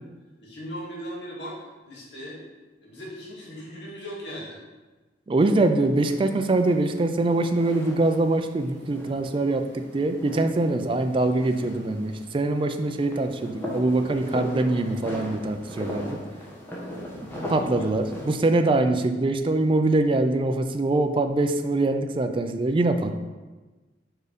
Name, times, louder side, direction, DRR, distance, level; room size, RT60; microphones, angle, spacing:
voice 1, 0.4-1.5 1.8-2.4 2.8-4.6 10.3-10.4 17.6-17.9, equal, 75° left, -5 dB, 1.9 m, -38 dB
voice 2, 5.3-16.2 17.2-23.2, right 2 dB, 30° right, 7 dB, 0.3 m, -23 dB
sound 1, 5.7-18.3, equal, 15° left, 1.1 m, -39 dB
4.8 x 4.6 x 5.0 m, 1.2 s
head